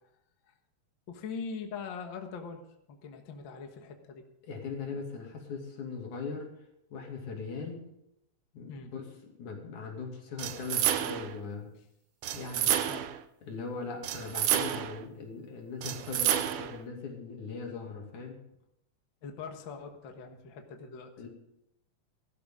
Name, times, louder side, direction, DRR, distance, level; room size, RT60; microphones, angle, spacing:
voice 1, 1.1-2.6 2.9-4.2 8.7-8.9 12.7-13.1 19.2-21.1, left 5 dB, 50° left, 4 dB, 1.8 m, -42 dB
voice 2, 4.4-6.5 6.9-7.9 8.5-11.7 12.4-12.8 13.4-18.4 21.2-21.3, left 4 dB, 80° left, 0 dB, 4.0 m, -40 dB
sound 1, 10.4-11.4 12.2-13.2 14.0-15.0 15.8-16.8, right 11 dB, 75° right, 1.3 m, -30 dB
17.0 x 13.0 x 3.7 m, 0.80 s
omnidirectional pair, 3.4 m